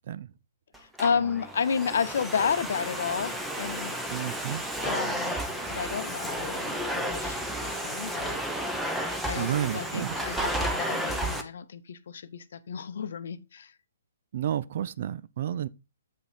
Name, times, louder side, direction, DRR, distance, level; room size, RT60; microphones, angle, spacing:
Domestic sounds home sounds, 0.7-11.4, right 1 dB, 5° right, 0.9 m, -32 dB
voice 1, 0.8-4.0 4.8-5.4 5.7-8.4 9.3-13.7, left 6 dB, 55° left, 0.7 m, -31 dB
voice 2, 4.1-4.6 9.4-10.2 14.3-15.7, right 10 dB, 45° right, 0.4 m, -31 dB
7.5 x 5.6 x 4.2 m
figure-of-eight pair, 125°, 0 cm